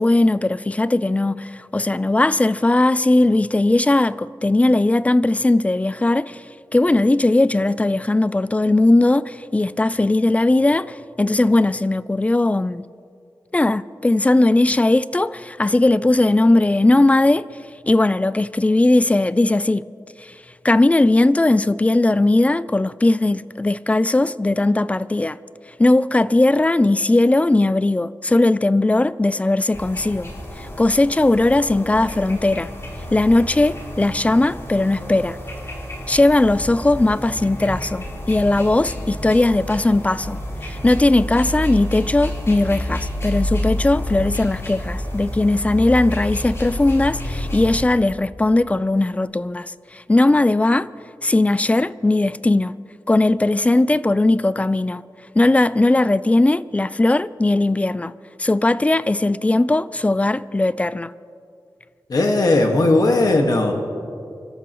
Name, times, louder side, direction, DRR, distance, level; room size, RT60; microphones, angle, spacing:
voice 1, 0.0-6.4 6.7-12.8 13.5-17.5 17.9-19.8 20.2-20.3 20.6-25.4 25.8-30.3 30.6-32.7 33.1-35.4 36.1-50.9 51.2-52.8 53.1-55.0 55.4-58.1 58.4-61.1, left 2 dB, 20° left, 0.3 m, -18 dB
sound 1, 29.7-47.8, equal, 35° left, 3.7 m, -29 dB
voice 2, 62.1-63.7, left 2 dB, 55° left, 1.6 m, -17 dB
29.0 x 13.0 x 3.0 m
wide cardioid pair, 115°, 8 cm